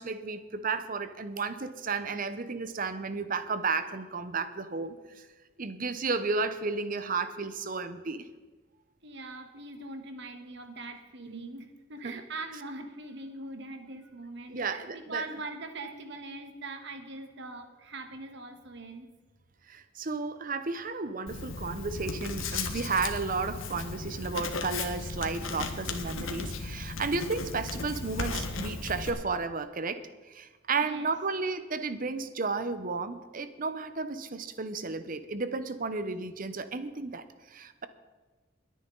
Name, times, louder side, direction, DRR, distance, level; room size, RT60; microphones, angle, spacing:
voice 1, 0.0-5.3 5.6-8.3 11.3-11.5 12.0-12.2 14.5-15.2 19.7-37.9, right 4 dB, 45° right, 12 dB, 0.8 m, -33 dB
voice 2, 9.0-19.1 30.8-31.1, right 2 dB, 60° right, 6 dB, 1.5 m, -42 dB
Writing, 21.3-29.1, left 3 dB, 90° left, 1.5 m, -36 dB
21.0 x 9.4 x 3.9 m, 1.3 s
head